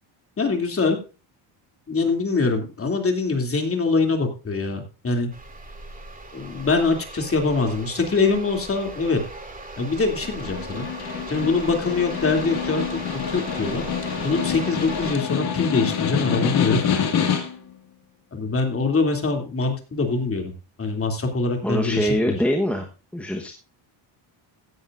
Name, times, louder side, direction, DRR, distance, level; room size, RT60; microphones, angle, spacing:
voice 1, 0.4-1.0 1.9-5.3 6.3-9.2 9.8-10.9 11.3-13.8 14.2-17.0 18.3-20.5 20.8-22.4, left 3 dB, 25° left, 3 dB, 2.9 m, -23 dB
sound 1, 5.3-15.2, right 2 dB, 15° right, 2.8 m, -38 dB
Snare drum, 10.2-17.7, left 8 dB, 50° left, 2.4 m, -26 dB
voice 2, 21.6-22.9 23.1-23.5, equal, 5° left, 2 dB, 1.2 m, -23 dB
16.0 x 10.5 x 2.6 m, 0.32 s
cardioid pair, 120°, 49 cm